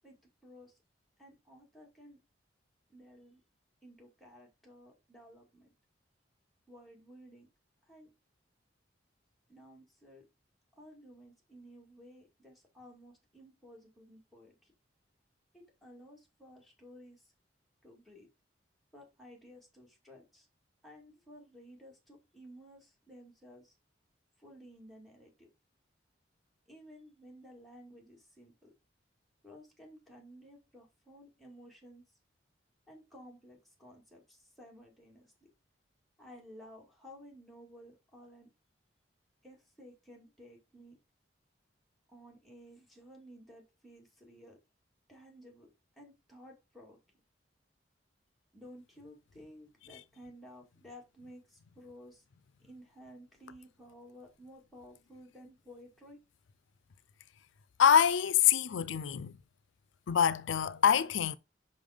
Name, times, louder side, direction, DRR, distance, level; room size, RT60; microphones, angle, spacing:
voice 1, 0.4-0.7 1.2-2.2 2.9-3.4 3.8-5.7 6.7-7.5 7.9-8.1 9.5-10.2 10.7-14.7 15.5-17.3 17.8-18.3 18.9-20.5 20.8-23.7 24.4-25.5 26.7-28.7 29.4-32.0 32.9-35.5 36.2-38.5 39.4-41.0 42.1-44.6 45.1-45.7 46.0-47.0 48.5-52.2 52.6-56.2, equal, ahead, 2.2 m, -55 dB
voice 2, 57.8-59.3 60.1-61.4, left 8 dB, 85° left, 0.4 m, -25 dB
5.5 x 5.4 x 5.1 m
head